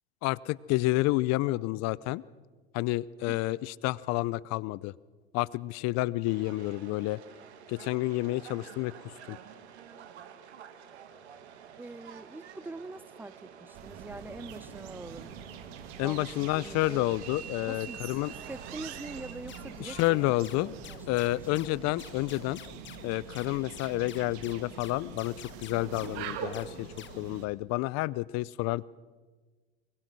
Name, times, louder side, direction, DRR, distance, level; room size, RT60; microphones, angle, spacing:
voice 1, 0.2-2.2 2.7-4.9 5.3-7.2 7.7-9.4 16.0-18.3 19.8-20.7 21.1-22.6 23.0-28.8, left 19 dB, 55° left, 22 dB, 0.7 m, -30 dB
Subway metro underground, 6.3-20.9, right 8 dB, 85° right, 1.9 m, -49 dB
voice 2, 11.8-15.4 16.0-17.1 17.7-21.3, right 2 dB, 5° right, 20 dB, 0.6 m, -44 dB
sound 1, 13.7-27.5, right 8 dB, 70° right, 2.4 m, -44 dB
sound 2, 19.5-27.3, left 11 dB, 35° left, 1.1 m, -49 dB
23.0 x 21.5 x 6.2 m, 1.3 s
hypercardioid pair, 85°, 32 cm